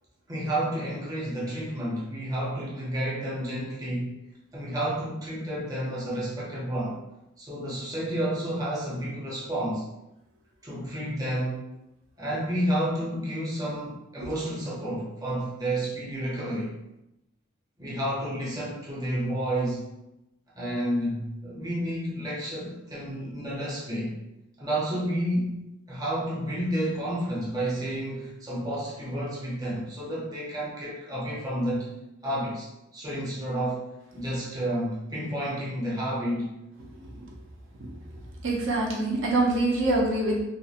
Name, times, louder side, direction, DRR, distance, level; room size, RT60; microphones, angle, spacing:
voice 1, 0.3-4.2 4.5-7.0 7.4-9.8 10.6-11.6 12.2-16.7 17.8-19.9 20.5-24.1 24.6-31.9 32.2-32.7 32.9-33.8 34.1-36.5, right 1 dB, 20° right, -6 dB, 0.7 m, -30 dB
voice 2, 38.4-40.4, right 2 dB, 70° right, -2 dB, 0.5 m, -24 dB
2.4 x 2.3 x 2.7 m, 0.90 s
head